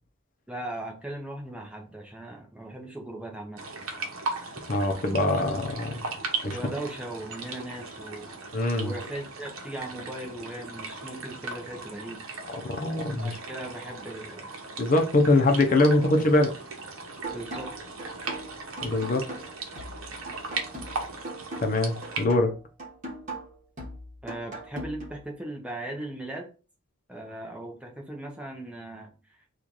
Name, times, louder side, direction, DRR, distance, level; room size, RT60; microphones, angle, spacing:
voice 1, 0.5-3.6 6.5-8.3 8.7-12.2 13.2-14.5 16.0-16.1 17.3-17.7 24.2-26.5 27.1-29.1, right 1 dB, 5° right, 1 dB, 0.7 m, -38 dB
sound 1, 3.6-22.3, right 3 dB, 80° right, 0.8 m, -38 dB
voice 2, 4.7-5.9 6.4-6.6 8.5-8.9 12.6-13.4 14.8-16.5 18.8-19.2 21.6-22.5, left 2 dB, 40° left, 4 dB, 0.6 m, -23 dB
sound 2, 17.2-25.2, right 1 dB, 35° right, 1.2 m, -40 dB
3.1 x 2.4 x 3.9 m, 0.35 s
head